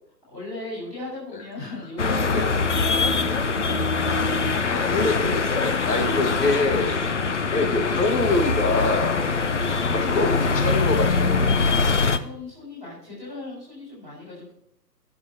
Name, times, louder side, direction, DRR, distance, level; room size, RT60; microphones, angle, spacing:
voice 1, 0.3-4.5 5.8-6.6 9.1-9.7 11.8-14.5, left 2 dB, 10° left, -7 dB, 4.0 m, -38 dB
sound 1, 2.0-12.2, left 4 dB, 45° left, 0.6 m, -23 dB
voice 2, 4.7-6.9 7.5-9.2 9.9-11.6, left 3 dB, 75° left, 3 dB, 1.7 m, -25 dB
19.0 x 6.9 x 2.8 m, 0.73 s
hypercardioid pair, 175°, 49 cm